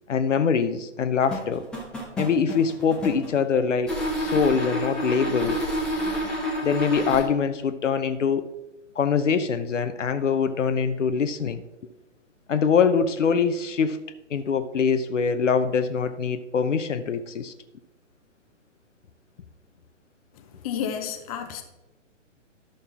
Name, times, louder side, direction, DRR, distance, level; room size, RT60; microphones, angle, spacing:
voice 1, 0.1-1.6 2.2-5.6 6.6-8.5 9.0-11.6 12.5-14.0 14.3-17.5, left 6 dB, 70° left, 10 dB, 0.8 m, -23 dB
sound 1, 1.2-3.4 3.9-7.2, equal, ahead, 0.5 m, -28 dB
voice 2, 20.4-21.6, left 8 dB, 30° left, 6 dB, 0.9 m, -31 dB
11.5 x 6.5 x 3.5 m, 1.0 s
figure-of-eight pair, 135°, 38 cm